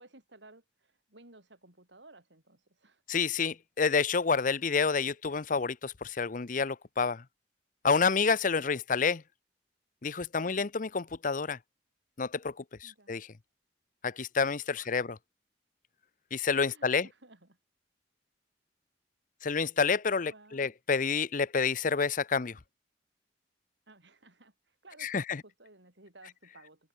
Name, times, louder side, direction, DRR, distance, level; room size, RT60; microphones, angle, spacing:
voice 1, 0.0-3.2 8.6-8.9 12.8-13.2 14.7-15.1 16.6-17.6 20.2-20.7 23.9-26.9, right 2 dB, 80° right, 7.1 m, -57 dB
voice 2, 3.1-7.2 7.8-9.2 10.0-11.6 12.2-12.5 12.8-13.3 14.0-15.2 16.3-17.1 19.4-22.6 25.0-25.4, left 5 dB, 45° left, 0.7 m, -29 dB
open air
head